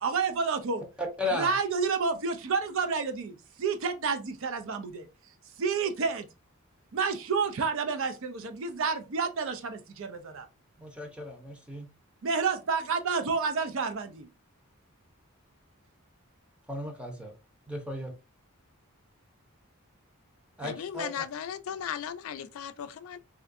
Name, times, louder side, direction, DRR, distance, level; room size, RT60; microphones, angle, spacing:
voice 1, 0.0-0.8 1.4-5.1 5.6-6.3 6.9-10.5 12.2-14.3, right 5 dB, 65° right, 0.5 m, -29 dB
voice 2, 1.0-1.5 10.8-11.9 16.7-17.3 17.7-18.1 20.6-21.1, left 1 dB, 5° right, 0.8 m, -35 dB
voice 3, 20.6-23.2, left 8 dB, 70° left, 0.4 m, -36 dB
3.4 x 2.5 x 2.5 m
head